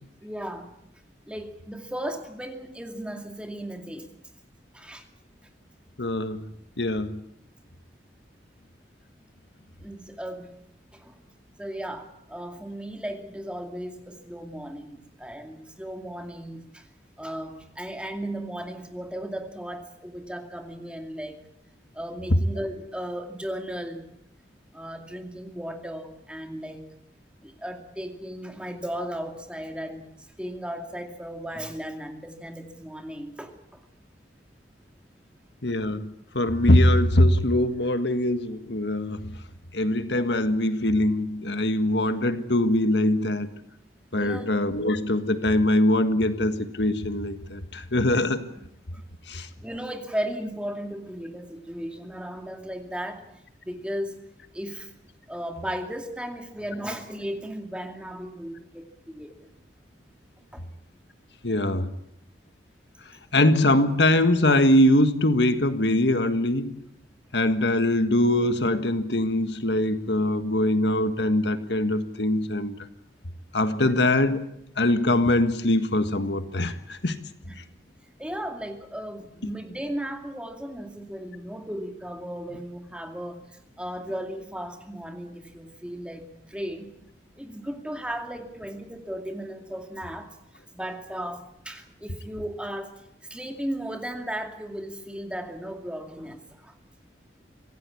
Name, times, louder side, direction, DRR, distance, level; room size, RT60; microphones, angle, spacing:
voice 1, 0.2-0.7 1.3-4.1 4.7-5.1 9.8-10.6 10.9-11.2 11.6-16.9 17.2-21.4 21.9-24.1 24.7-26.9 27.4-33.8 44.1-44.5 48.1-48.2 48.9-49.0 49.3-53.2 53.6-54.2 54.5-54.9 55.3-59.5 60.5-60.6 73.7-74.0 77.5-77.6 78.2-87.0 87.4-90.4 90.7-93.0 93.3-96.7, equal, 5° right, 4 dB, 2.4 m, -36 dB
voice 2, 6.0-6.4 6.8-7.2 35.6-39.3 39.7-43.5 44.1-48.5 49.3-49.5 61.4-61.9 63.3-66.7 67.3-72.8 73.5-74.4 74.8-77.2, left 1 dB, 80° left, 10 dB, 1.7 m, -22 dB
25.5 x 16.5 x 8.5 m, 0.76 s
head